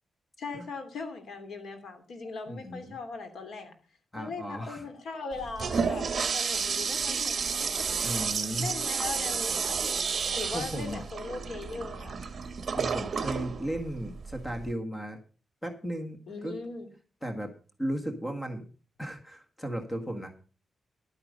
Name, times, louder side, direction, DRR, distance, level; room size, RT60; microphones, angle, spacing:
voice 1, 0.4-3.7 4.1-8.1 8.6-9.9 10.3-12.2 16.3-16.9, left 4 dB, 75° left, 6 dB, 2.8 m, -39 dB
voice 2, 2.5-2.9 4.1-4.9 8.0-8.7 10.5-11.0 12.7-15.2 15.6-16.6 17.2-17.5 17.8-18.6 19.0-20.3, right 1 dB, 10° left, 4 dB, 1.7 m, -35 dB
Toilet flush, 5.3-14.7, right 6 dB, 40° right, 1.3 m, -31 dB
12.0 x 8.8 x 5.3 m, 0.37 s
wide cardioid pair, 160°, 0 cm